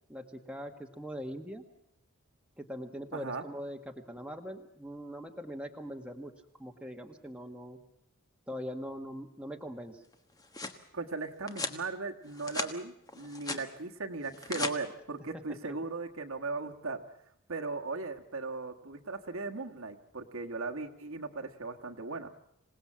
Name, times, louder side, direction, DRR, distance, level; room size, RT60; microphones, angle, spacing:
voice 1, 0.1-1.6 2.6-6.3 6.6-7.8 8.5-10.0 15.6-15.8, equal, 5° right, 3 dB, 1.5 m, -42 dB
voice 2, 3.1-3.4 10.9-17.0 17.5-22.3, right 3 dB, 65° right, 3 dB, 1.5 m, -38 dB
sound 1, 10.1-10.8 11.5-11.8 12.3-12.7 13.1-13.6 14.2-14.7, left 3 dB, 15° left, 1.3 m, -37 dB
26.5 x 18.5 x 7.5 m, 0.79 s
head